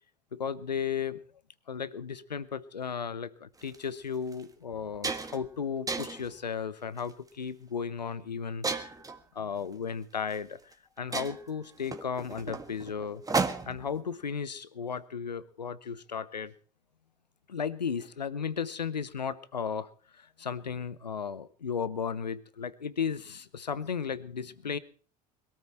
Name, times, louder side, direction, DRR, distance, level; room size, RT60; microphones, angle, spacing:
voice 1, 0.3-1.2 1.7-8.9 9.3-10.7 11.0-13.2 13.6-16.5 17.5-24.8, left 6 dB, 90° left, 18 dB, 0.8 m, -35 dB
sound 1, 3.6-3.8 4.3-4.4 4.7-5.5 5.9-6.3 7.0-7.3 8.6-9.2 10.3-10.4 10.7-10.8 11.1-13.9, right 4 dB, 15° right, 1.6 m, -33 dB
21.5 x 13.5 x 4.4 m, 0.41 s
figure-of-eight pair, 70°, 21 cm